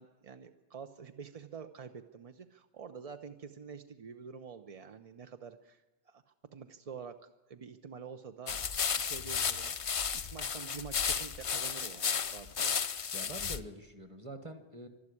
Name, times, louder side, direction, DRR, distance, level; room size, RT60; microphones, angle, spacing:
voice 1, 0.0-6.2 6.5-8.6 9.0-9.8 10.1-12.8, right 6 dB, 45° right, 8 dB, 0.5 m, -47 dB
sound 1, 8.5-13.6, left 6 dB, 50° left, 0.4 m, -33 dB
voice 2, 13.1-14.9, right 1 dB, 25° right, 8 dB, 1.4 m, -45 dB
12.5 x 12.0 x 9.7 m, 1.1 s
omnidirectional pair, 1.2 m